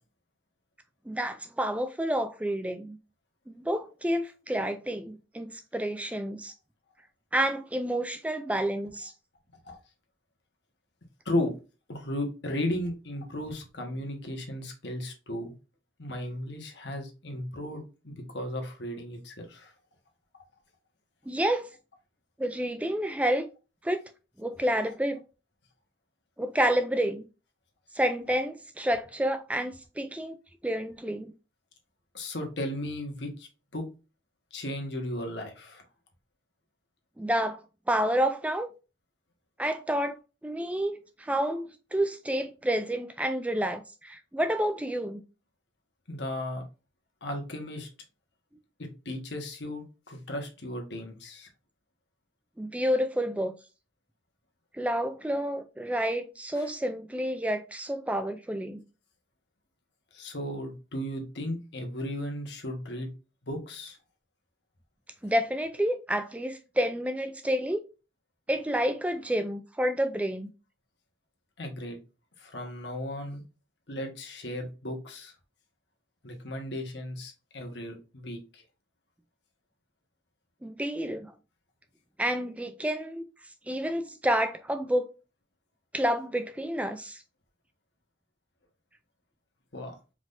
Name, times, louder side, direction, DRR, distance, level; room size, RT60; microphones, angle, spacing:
voice 1, 1.1-3.0 3.5-6.5 7.3-9.1 21.3-21.7 22.4-23.5 23.8-24.0 24.4-25.2 26.4-27.2 28.0-30.4 30.6-31.3 37.2-37.6 37.9-38.7 39.6-45.2 52.6-53.5 54.8-58.8 65.2-67.8 68.5-70.5 80.6-81.3 82.2-83.2 83.7-85.0 85.9-87.2, equal, 10° right, 0.3 m, -29 dB
voice 2, 11.9-15.5 16.0-19.7 32.1-33.8 34.5-35.8 46.1-46.6 47.2-47.9 48.8-51.5 56.5-56.7 60.1-63.1 63.4-64.0 71.6-72.0 72.4-73.4 73.9-75.3 76.2-78.6 89.7-90.0, left 1 dB, 70° left, 1.3 m, -35 dB
4.8 x 3.8 x 2.6 m
head